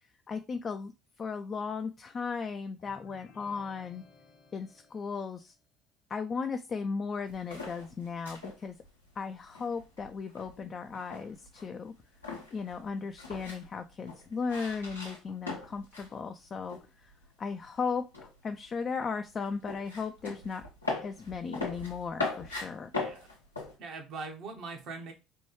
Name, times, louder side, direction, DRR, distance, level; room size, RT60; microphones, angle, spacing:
voice 1, 0.3-4.0 4.5-5.5 6.1-8.8 9.2-11.9 12.5-17.1 17.4-20.6 21.0-22.9, left 5 dB, 35° left, 6 dB, 0.3 m, -36 dB
sound 1, 2.8-5.6, left 4 dB, 55° left, 0.9 m, -58 dB
sound 2, 7.2-16.2 16.4-17.3 17.6-23.7, left 3 dB, 90° left, 0.8 m, -40 dB
voice 2, 22.9-23.3 23.8-25.1, right 4 dB, 55° right, 3 dB, 0.9 m, -41 dB
4.4 x 2.3 x 3.0 m, 0.28 s
figure-of-eight pair, 60°, 0 cm